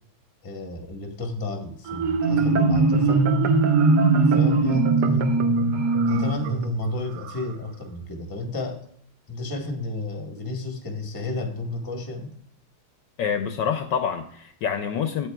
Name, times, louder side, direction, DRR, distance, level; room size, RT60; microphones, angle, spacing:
voice 1, 0.4-3.3 4.3-5.5 6.1-8.8 9.3-12.3, left 2 dB, 15° left, 4 dB, 0.7 m, -32 dB
Marimba xylophone, 1.9-7.4, right 3 dB, 65° right, 1.3 m, -20 dB
voice 2, 13.2-15.3, left 7 dB, 70° left, 8 dB, 1.2 m, -26 dB
9.0 x 8.8 x 2.2 m, 0.68 s
omnidirectional pair, 2.3 m